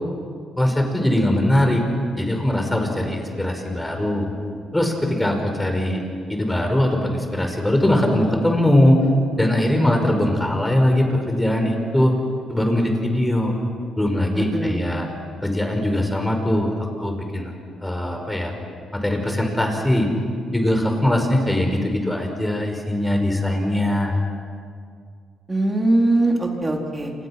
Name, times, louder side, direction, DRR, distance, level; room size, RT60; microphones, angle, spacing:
voice 1, 0.6-1.8 2.2-4.3 4.7-6.0 6.3-9.0 9.4-12.2 12.5-13.5 14.0-15.1 15.4-16.7 17.0-17.5 17.8-18.5 18.9-20.1 20.5-24.2, left 1 dB, 10° left, 4 dB, 5.4 m, -21 dB
voice 2, 14.3-14.9 25.5-27.1, right 2 dB, 20° right, 1 dB, 4.1 m, -21 dB
29.0 x 26.5 x 6.1 m, 2.2 s
cardioid pair, 90°, 0 cm